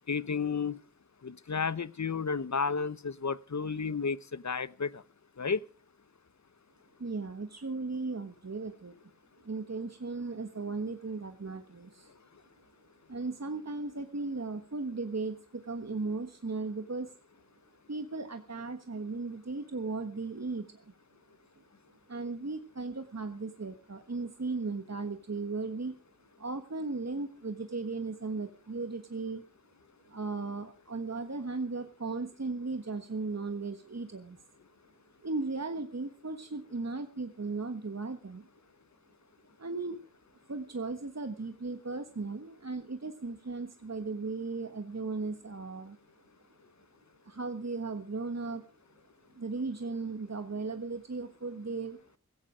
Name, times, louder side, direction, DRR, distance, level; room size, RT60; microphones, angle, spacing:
voice 1, 0.1-0.8 1.2-5.0 5.4-5.6, left 5 dB, 60° left, 0.9 m, -32 dB
voice 2, 7.0-9.0 9.4-12.1 13.1-17.1 17.9-20.9 22.1-26.0 26.4-29.4 30.1-34.4 35.2-38.5 39.6-40.0 40.5-46.0 47.2-48.7 49.3-52.0, right 3 dB, 55° right, 1.4 m, -36 dB
16.0 x 16.0 x 5.0 m
wide cardioid pair, 45°, 32 cm